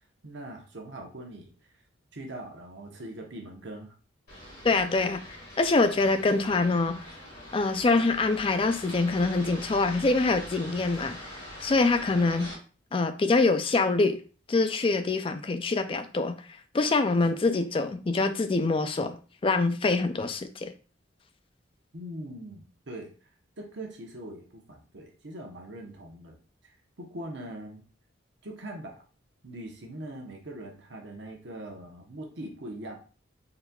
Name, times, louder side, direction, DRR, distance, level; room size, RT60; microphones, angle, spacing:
voice 1, 0.2-1.5 2.1-3.9 21.9-23.1 23.6-26.4 27.0-27.8 28.4-29.0 29.4-33.0, right 1 dB, 60° right, 1.0 m, -41 dB
sound 1, 4.3-12.6, equal, 50° left, 1.9 m, -43 dB
voice 2, 4.6-7.0 7.5-11.3 11.6-12.5 12.9-14.2 14.5-16.4 16.7-19.2 19.4-20.7, left 3 dB, 25° left, 0.3 m, -25 dB
4.2 x 3.9 x 2.3 m
head